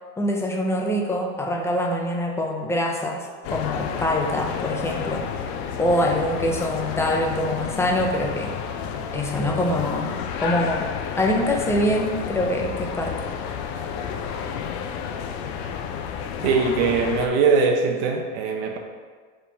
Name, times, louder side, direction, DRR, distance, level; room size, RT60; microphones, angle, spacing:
voice 1, 0.2-5.2 5.8-8.5 9.1-10.1 10.4-10.9 11.2-13.2, left 1 dB, 10° left, 1 dB, 0.5 m, -24 dB
sound 1, 3.4-17.3, left 7 dB, 70° left, 0.7 m, -31 dB
voice 2, 16.4-18.8, right 4 dB, 80° right, 2 dB, 0.9 m, -21 dB
4.9 x 3.7 x 5.5 m, 1.5 s
supercardioid pair, 150°, 33 cm